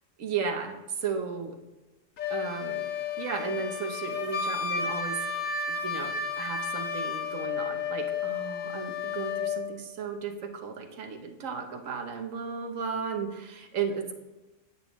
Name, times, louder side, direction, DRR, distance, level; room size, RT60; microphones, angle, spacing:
voice 1, 0.2-1.6 2.3-2.9 3.2-5.2 5.7-14.1, right 5 dB, 80° right, 5 dB, 1.3 m, -35 dB
Wind instrument woodwind instrument, 2.2-9.6, left 5 dB, 80° left, 1.3 m, -32 dB
10.0 x 8.0 x 3.0 m, 1.1 s
omnidirectional pair, 1.3 m